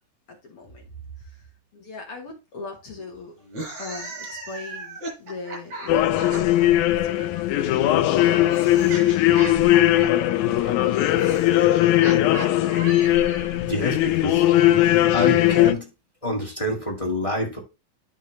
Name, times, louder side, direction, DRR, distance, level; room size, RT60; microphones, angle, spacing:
voice 1, 0.3-3.4 3.8-9.9 10.5-11.6, left 3 dB, 55° left, 1.9 m, -41 dB
sound 1, 3.4-6.7 7.7-13.6, right 2 dB, 55° right, 6.3 m, -37 dB
sound 2, 5.9-15.7, left 14 dB, 85° left, 1.6 m, -19 dB
voice 2, 13.5-14.5 15.1-15.9 16.2-17.6, left 2 dB, 20° left, 1.0 m, -27 dB
12.0 x 4.6 x 3.2 m
omnidirectional pair, 4.0 m